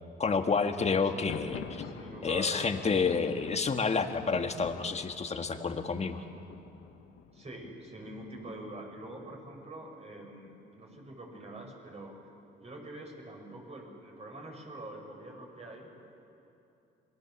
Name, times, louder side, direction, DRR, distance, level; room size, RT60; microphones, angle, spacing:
voice 1, 0.2-1.6 2.2-6.2, left 5 dB, 35° left, 6 dB, 1.7 m, -29 dB
Thunder, 1.1-8.8, left 8 dB, 90° left, 1.4 m, -47 dB
voice 2, 1.8-2.7 3.3-3.5 7.3-12.3 12.6-15.9, right 1 dB, 30° right, 0 dB, 6.3 m, -45 dB
27.5 x 21.0 x 7.2 m, 2.8 s
cardioid pair, 90°, 20 cm